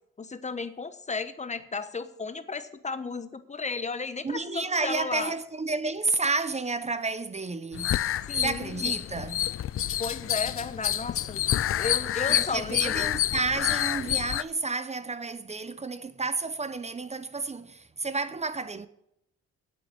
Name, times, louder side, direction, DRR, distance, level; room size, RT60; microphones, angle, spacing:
voice 1, 0.2-5.3 8.3-9.0 10.0-11.4 11.8-13.1, left 4 dB, 25° left, 1.1 m, -34 dB
voice 2, 4.2-8.0 8.3-9.4 12.3-18.9, right 3 dB, 20° right, 0.7 m, -31 dB
sound 1, 7.7-14.4, left 12 dB, 45° left, 0.5 m, -28 dB
9.2 x 8.0 x 6.9 m
cardioid pair, 90°, 30 cm